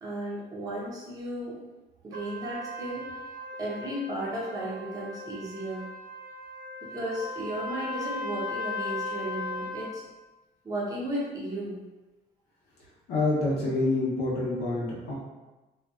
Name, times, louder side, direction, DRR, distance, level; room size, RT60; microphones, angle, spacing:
voice 1, 0.0-1.6 2.0-3.2 3.6-5.8 6.8-10.0 10.6-11.8, right 1 dB, 20° right, -5 dB, 0.6 m, -34 dB
Trumpet, 2.1-9.9, left 2 dB, 70° right, 0.7 m, -37 dB
voice 2, 13.1-15.1, left 2 dB, 70° left, -4 dB, 0.9 m, -27 dB
2.5 x 2.3 x 2.4 m, 1.1 s
cardioid pair, 110°, 17 cm